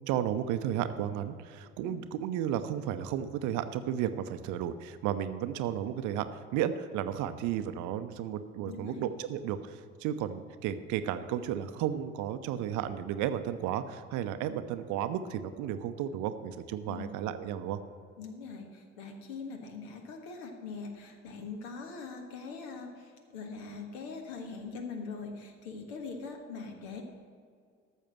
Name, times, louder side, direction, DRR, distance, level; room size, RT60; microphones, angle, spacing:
voice 1, 0.0-17.8, right 10 dB, 55° right, 11 dB, 0.7 m, -33 dB
voice 2, 8.6-9.1 16.9-17.1 18.2-27.0, left 4 dB, 65° left, 4 dB, 1.5 m, -42 dB
13.5 x 6.5 x 6.1 m, 2.2 s
figure-of-eight pair, 50°, 37 cm